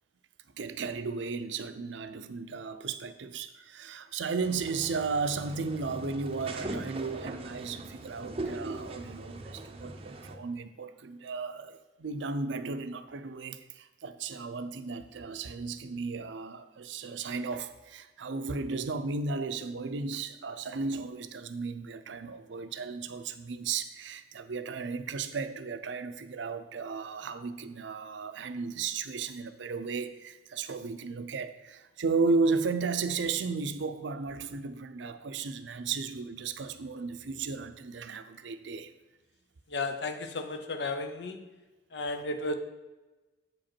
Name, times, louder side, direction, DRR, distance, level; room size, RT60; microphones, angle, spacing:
voice 1, 0.6-38.9, right 4 dB, 85° right, 0.5 m, -34 dB
sound 1, 4.4-10.4, right 2 dB, 30° right, 0.6 m, -40 dB
voice 2, 39.7-41.4 41.9-42.5, left 2 dB, 65° left, 0.7 m, -33 dB
7.7 x 5.1 x 4.4 m
head